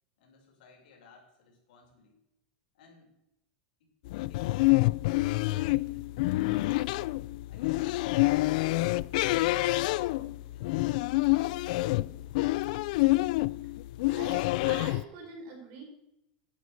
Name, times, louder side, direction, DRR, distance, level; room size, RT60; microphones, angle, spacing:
voice 1, 0.2-2.2 2.7-3.1 3.8-4.7 5.3-6.1 7.5-12.1, left 4 dB, 80° left, 0 dB, 5.2 m, -57 dB
sound 1, 4.1-15.0, left 20 dB, 60° left, 0.3 m, -27 dB
voice 2, 14.1-15.8, right 4 dB, 50° right, 2 dB, 4.6 m, -44 dB
11.5 x 9.7 x 6.4 m, 0.85 s
supercardioid pair, 165°, 5 cm